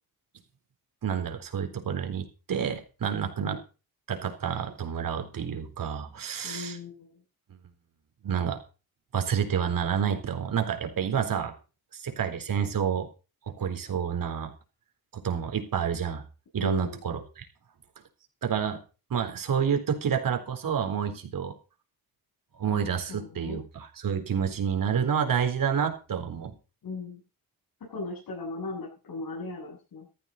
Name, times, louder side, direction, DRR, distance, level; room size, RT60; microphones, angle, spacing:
voice 1, 1.0-3.6 4.1-6.8 8.2-8.6 9.1-11.5 11.9-13.1 13.5-14.5 15.1-16.2 16.5-17.5 18.4-18.8 19.1-21.5 22.6-26.5, right 7 dB, 60° right, 6 dB, 4.0 m, -29 dB
voice 2, 6.4-7.1 16.6-17.0 23.1-23.6 26.8-27.2 27.9-30.0, left 3 dB, 65° left, -4 dB, 7.7 m, -37 dB
15.0 x 14.0 x 4.2 m, 0.34 s
wide cardioid pair, 140°, 37 cm